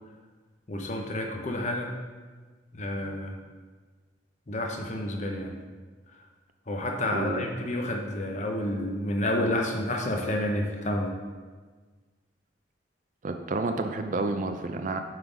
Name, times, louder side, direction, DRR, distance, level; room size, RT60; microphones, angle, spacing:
voice 1, 0.7-1.9 2.7-3.3 4.5-5.6 6.7-11.1, left 1 dB, 40° left, 2 dB, 0.9 m, -29 dB
voice 2, 7.1-7.5 13.2-15.0, right 3 dB, 45° right, 6 dB, 0.5 m, -30 dB
7.7 x 3.8 x 4.7 m, 1.4 s
head